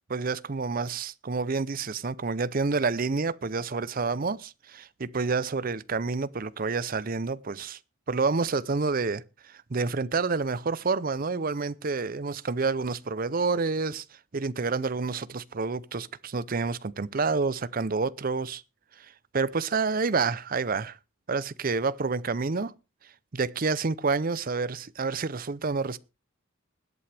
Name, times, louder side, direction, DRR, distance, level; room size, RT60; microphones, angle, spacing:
voice 1, 0.1-7.8 8.1-14.0 14.3-18.6 19.3-21.0 21.3-22.7 23.3-26.0, right 4 dB, 45° right, 0.6 m, -28 dB
20.5 x 8.7 x 3.4 m
head